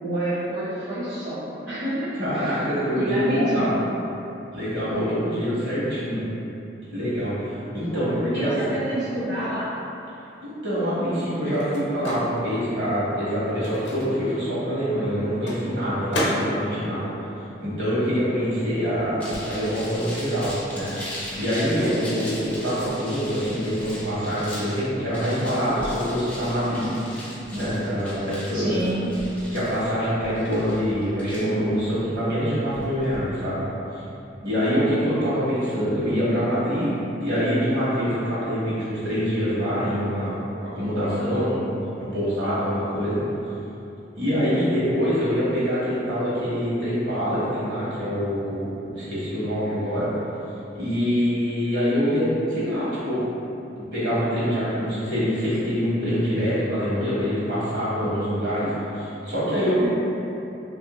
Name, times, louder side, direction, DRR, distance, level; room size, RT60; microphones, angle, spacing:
voice 1, 0.0-2.6 2.9-3.8 4.9-5.2 7.9-9.8 21.8-22.2 28.5-29.1 59.8-59.9, right 1 dB, 45° right, -14 dB, 0.7 m, -28 dB
voice 2, 2.2-3.7 4.5-6.2 6.9-8.8 10.4-17.3 17.6-21.1 21.3-26.9 27.5-28.8 29.5-33.6 33.9-34.0 34.4-36.9 37.2-41.7 42.1-43.2 44.2-50.2 50.7-53.2 53.8-59.9, equal, 65° right, -10 dB, 1.2 m, -25 dB
Microwave oven, 10.2-18.3 18.6-20.5, left 1 dB, 70° left, 0.6 m, -34 dB
sound 1, 19.2-33.2, left 1 dB, 10° left, 0.5 m, -39 dB
2.9 x 2.5 x 3.0 m, 2.9 s
head